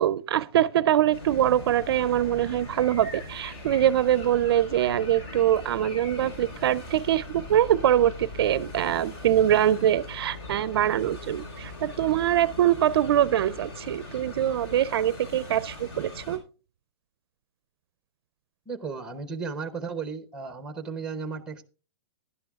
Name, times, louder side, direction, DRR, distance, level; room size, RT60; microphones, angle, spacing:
voice 1, 0.0-16.4, right 11 dB, 55° right, 0.4 m, -23 dB
sound 1, 1.1-16.4, left 2 dB, 60° left, 4.5 m, -41 dB
sound 2, 1.8-8.7, left 1 dB, 15° left, 5.0 m, -48 dB
voice 2, 18.7-21.6, right 5 dB, 5° right, 0.7 m, -34 dB
17.0 x 11.0 x 2.4 m
hypercardioid pair, 160°, 15 cm